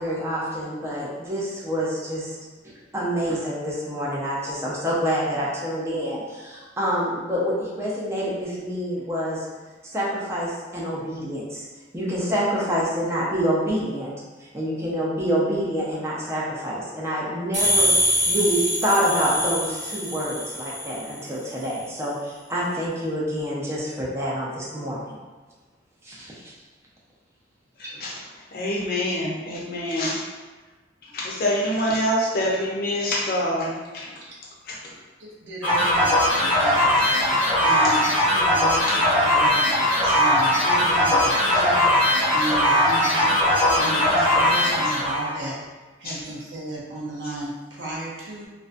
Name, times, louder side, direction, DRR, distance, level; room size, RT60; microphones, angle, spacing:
voice 1, 0.0-2.4 2.6-9.5 9.9-11.7 11.9-14.1 14.5-17.9 18.3-25.2 26.0-26.5, equal, 15° right, -6 dB, 0.5 m, -27 dB
sound 1, 17.5-21.1, equal, 45° right, 0.8 m, -24 dB
voice 2, 27.8-28.2 28.5-30.2 31.0-34.1 34.7-34.9 36.7-37.3 37.8-37.9 38.9-39.0 40.0-40.2 46.0-46.2 47.2-47.3, equal, 55° left, -4 dB, 0.6 m, -27 dB
voice 3, 35.2-36.1 36.4-36.9 37.6-39.6 40.1-43.3 43.7-45.5 46.0-48.5, right 2 dB, 75° right, -5 dB, 0.6 m, -34 dB
sound 2, 35.6-45.4, left 1 dB, 10° left, 0.9 m, -20 dB
2.4 x 2.1 x 2.5 m, 1.3 s
head